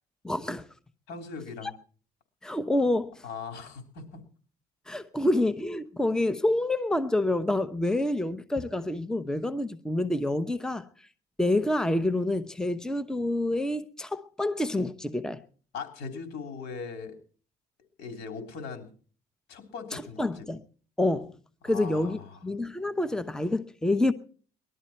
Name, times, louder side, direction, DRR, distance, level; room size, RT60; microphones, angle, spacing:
voice 1, 0.2-0.7 1.6-1.7 2.4-3.2 4.9-10.8 11.4-15.4 19.9-20.6 21.0-21.4 21.6-24.1, left 1 dB, 5° left, 0.8 m, -27 dB
voice 2, 1.1-1.7 3.2-4.2 15.7-17.2 18.0-18.9 19.5-20.4 21.6-22.4, left 5 dB, 75° left, 3.6 m, -39 dB
20.0 x 12.5 x 4.4 m
cardioid pair, 110°, 17 cm